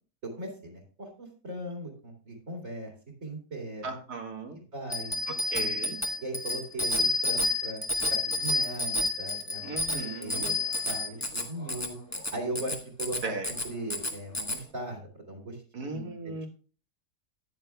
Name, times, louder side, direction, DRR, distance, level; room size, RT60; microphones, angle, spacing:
voice 1, 0.2-2.9 3.2-3.9 4.5-5.1 5.5-5.8 6.2-7.8 8.1-9.6 9.9-12.0 12.3-15.0 15.3-16.1, right 1 dB, 55° right, 0 dB, 2.7 m, -39 dB
voice 2, 3.8-4.6 5.3-6.0 9.6-10.5 13.2-13.5 15.7-16.5, right 3 dB, 75° right, 3 dB, 2.3 m, -37 dB
Bicycle bell, 4.9-14.6, left 2 dB, 10° left, 0.9 m, -30 dB
14.0 x 9.7 x 2.3 m, 0.39 s
omnidirectional pair, 1.7 m